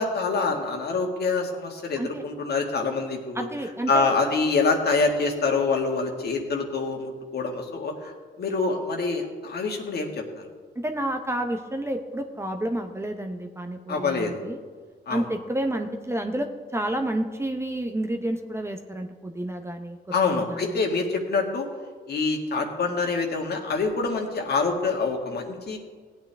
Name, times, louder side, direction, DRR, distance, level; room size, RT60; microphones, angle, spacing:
voice 1, 0.0-3.5 3.9-10.4 13.9-14.4 15.1-15.3 20.1-21.7 22.1-25.8, left 4 dB, 55° left, 2 dB, 1.8 m, -26 dB
voice 2, 3.3-4.1 10.8-14.6 15.1-20.0 20.5-20.6, right 1 dB, 15° right, 4 dB, 0.8 m, -30 dB
16.5 x 8.8 x 3.5 m, 1.6 s
cardioid pair, 90°, 20 cm